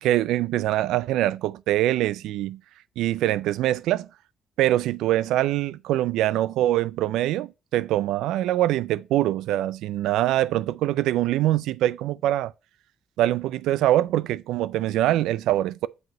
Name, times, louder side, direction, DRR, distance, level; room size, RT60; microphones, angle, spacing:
voice 1, 0.0-2.6 3.0-4.1 4.6-12.5 13.2-15.9, right 14 dB, 90° right, 0.4 m, -23 dB
7.9 x 3.1 x 5.8 m
cardioid pair, 90°, 0 cm